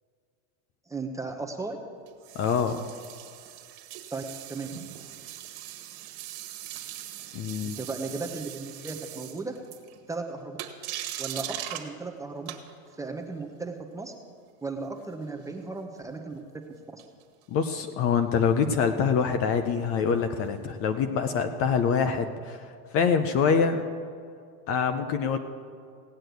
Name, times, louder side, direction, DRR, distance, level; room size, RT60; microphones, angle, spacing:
voice 1, 0.9-1.8 4.1-4.2 4.5-4.7 7.8-9.5 10.1-10.6 11.2-12.5 13.0-14.1 14.6-16.4 16.9-17.0, right 3 dB, 5° right, 4 dB, 0.8 m, -35 dB
sound 1, 2.0-10.1 10.6-11.9 12.5-13.0 17.0-17.4 21.0-21.1, right 13 dB, 65° right, 1.6 m, -40 dB
voice 2, 2.4-2.8 7.3-7.8 17.5-23.8 24.7-25.4, left 6 dB, 30° left, 8 dB, 0.6 m, -25 dB
17.0 x 6.5 x 9.2 m, 2.2 s
supercardioid pair, 145°, 44 cm